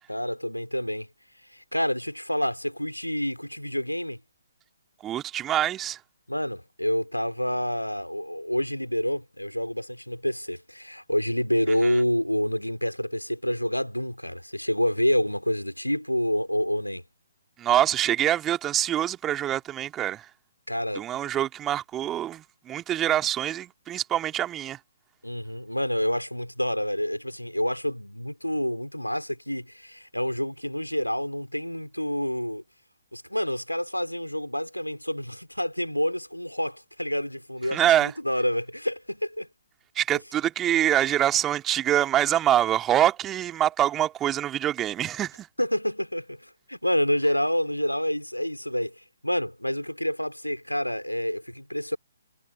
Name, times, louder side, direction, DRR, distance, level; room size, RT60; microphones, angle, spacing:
voice 1, 0.1-1.1 1.5-4.2 6.3-17.0 20.7-21.1 25.2-32.6 33.1-39.5 45.6-52.0, equal, 85° left, 4.1 m, -28 dB
voice 2, 5.0-6.0 11.8-11.9 17.6-20.3 21.0-24.8 37.7-38.1 40.0-45.5, right 11 dB, 15° right, 2.4 m, -25 dB
figure-of-eight pair, 135°, 0 cm